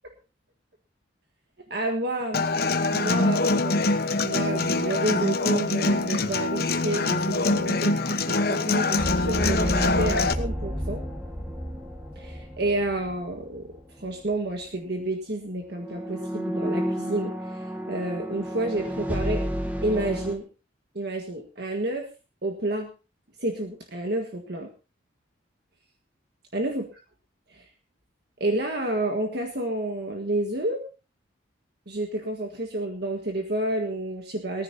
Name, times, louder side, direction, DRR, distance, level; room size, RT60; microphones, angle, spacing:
voice 1, 1.7-11.0 12.1-13.7 14.0-19.4 19.8-20.5 20.9-22.1 22.4-22.9 23.4-24.7 26.5-26.9 27.5-27.6 28.4-30.8 31.9-34.6, right 1 dB, 55° right, 3 dB, 1.6 m, -30 dB
Human voice / Acoustic guitar, 2.3-10.3, left 3 dB, 50° left, 1.1 m, -24 dB
sound 1, 9.0-13.8 14.1-14.3 15.8-20.4, equal, 10° right, 1.8 m, -31 dB
19.5 x 14.5 x 2.8 m, 0.31 s
head